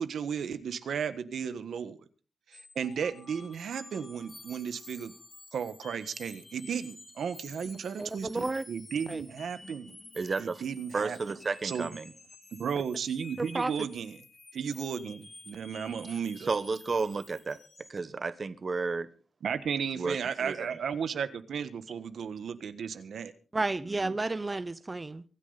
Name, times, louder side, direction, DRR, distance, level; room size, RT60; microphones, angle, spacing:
voice 1, 0.0-2.0 2.5-5.1 5.5-10.0 10.4-11.2 11.6-12.0 12.6-14.2 14.5-16.5 19.4-23.3, right 7 dB, 80° right, 1.4 m, -34 dB
sound 1, 2.5-18.0, left 2 dB, 30° left, 3.5 m, -51 dB
voice 2, 8.0-8.6 9.1-9.2 13.4-13.7 23.5-25.2, right 2 dB, 20° right, 0.8 m, -32 dB
voice 3, 10.2-10.6 10.9-12.1 16.5-17.6 17.9-19.1 20.0-20.8 24.0-24.1, right 4 dB, 40° right, 1.2 m, -32 dB
24.5 x 10.0 x 4.1 m
wide cardioid pair, 120°, 0 cm